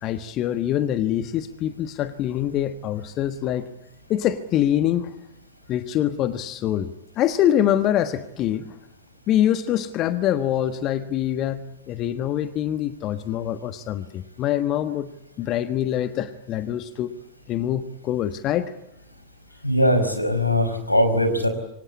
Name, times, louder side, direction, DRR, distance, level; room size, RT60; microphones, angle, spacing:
voice 1, 0.0-3.7 4.1-5.1 5.7-8.8 9.3-15.1 15.4-17.1 17.5-18.7, left 11 dB, 35° left, 11 dB, 1.4 m, -24 dB
voice 2, 19.6-21.5, equal, 90° left, 8 dB, 5.1 m, -20 dB
28.0 x 24.5 x 8.6 m, 0.84 s
figure-of-eight pair, 90°, 0 cm